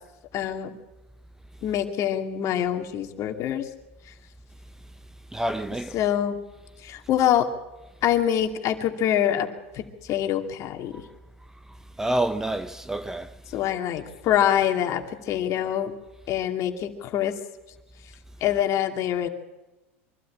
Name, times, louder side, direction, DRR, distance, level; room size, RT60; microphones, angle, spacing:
voice 1, 0.3-0.7 1.6-3.6 5.9-6.4 6.8-7.5 8.0-9.5 9.7-9.8 10.1-10.9 13.5-15.9 16.3-17.3 18.4-19.3, left 10 dB, 45° left, 2.5 m, -25 dB
voice 2, 5.3-6.0 10.9-11.0 12.0-13.4, right 1 dB, 5° right, 0.7 m, -28 dB
24.0 x 12.5 x 8.7 m
hypercardioid pair, 105°, 7 cm